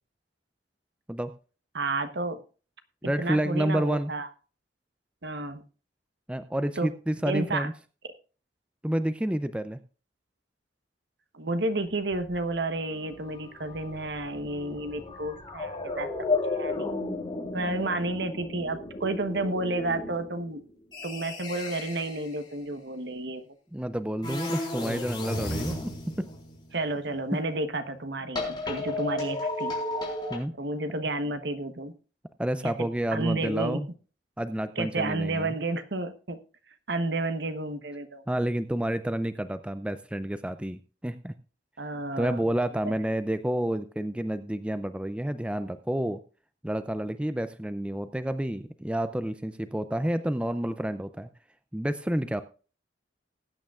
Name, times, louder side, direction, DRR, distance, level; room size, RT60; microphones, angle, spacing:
voice 1, 1.7-2.4 3.2-4.3 5.2-5.6 6.8-6.9 7.2-7.7 11.3-16.1 16.5-16.9 17.5-20.6 21.0-23.4 26.7-29.8 30.6-31.9 32.6-33.8 34.8-36.4 36.9-38.2 41.8-42.4 42.8-42.9, right 2 dB, 60° right, 9 dB, 1.1 m, -31 dB
voice 2, 3.0-4.1 6.3-7.7 8.8-9.8 23.7-26.3 27.3-27.4 30.3-30.5 32.4-33.9 34.4-35.5 38.3-41.3 42.2-46.2 46.6-51.3 51.7-52.4, right 1 dB, 5° right, 11 dB, 0.4 m, -29 dB
sound 1, 12.1-12.4 12.8-22.4 24.2-26.9 28.3-30.4, left 2 dB, 25° left, 3.9 m, -34 dB
20.0 x 9.0 x 2.4 m, 0.37 s
head